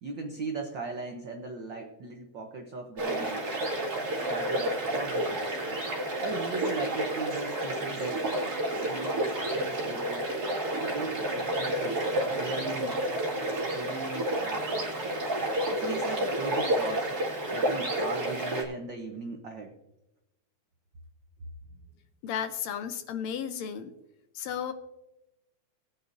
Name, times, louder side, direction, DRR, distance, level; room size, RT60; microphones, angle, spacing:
voice 1, 0.0-3.5 4.3-5.5 6.2-8.3 8.8-10.3 10.8-13.0 13.7-14.7 15.7-17.1 17.5-19.7, right 4 dB, 75° right, 3 dB, 1.0 m, -38 dB
sound 1, 3.0-18.6, right 1 dB, 35° right, 2.3 m, -30 dB
voice 2, 22.2-24.0 24.3-24.7, left 8 dB, 75° left, 9 dB, 1.8 m, -34 dB
19.0 x 8.7 x 2.6 m, 0.92 s
omnidirectional pair, 3.5 m